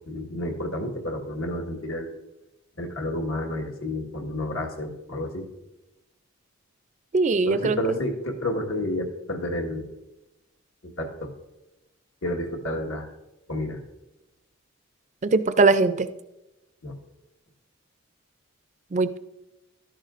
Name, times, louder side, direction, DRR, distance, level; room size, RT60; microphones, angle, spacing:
voice 1, 0.1-2.1 2.8-5.5 7.5-9.8 11.0-11.3 12.2-13.1 13.5-13.8 16.8-16.9, left 1 dB, 80° left, 2 dB, 1.6 m, -30 dB
voice 2, 7.1-8.0 15.2-16.1 18.9-19.2, right 3 dB, 35° right, 12 dB, 0.4 m, -21 dB
12.5 x 10.5 x 2.5 m, 0.97 s
head